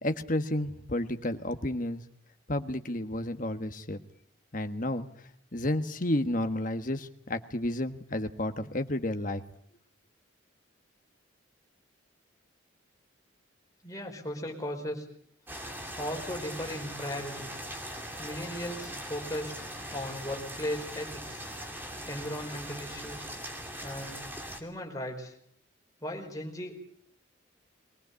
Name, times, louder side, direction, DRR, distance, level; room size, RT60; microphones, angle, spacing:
voice 1, 0.0-2.0 2.5-4.0 4.5-5.1 5.5-9.4, left 1 dB, 40° left, 8 dB, 1.5 m, -31 dB
voice 2, 13.8-15.0 16.0-17.5 18.2-19.5 19.9-21.4 22.1-23.3 23.8-24.2 24.5-25.3 26.0-26.7, equal, 15° left, 0 dB, 4.9 m, -37 dB
sound 1, 15.5-24.6, equal, 10° right, 2.9 m, -40 dB
23.0 x 19.0 x 8.4 m, 0.66 s
head